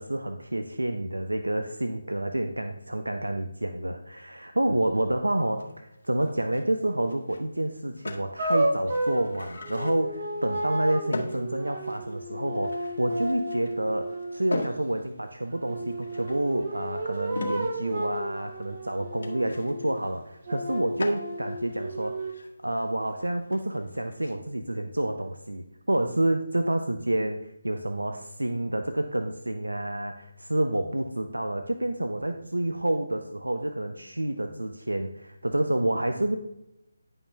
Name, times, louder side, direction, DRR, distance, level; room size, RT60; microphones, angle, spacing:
voice 1, 0.0-22.3 22.6-36.4, right 1 dB, 90° right, 7 dB, 0.6 m, -29 dB
sound 1, 5.4-24.4, left 3 dB, 55° left, 1.8 m, -42 dB
sound 2, 8.4-14.4 15.6-20.0 20.5-22.3, right 1 dB, 45° right, 1.4 m, -32 dB
10.0 x 5.5 x 3.4 m, 0.86 s
figure-of-eight pair, 150°, 0 cm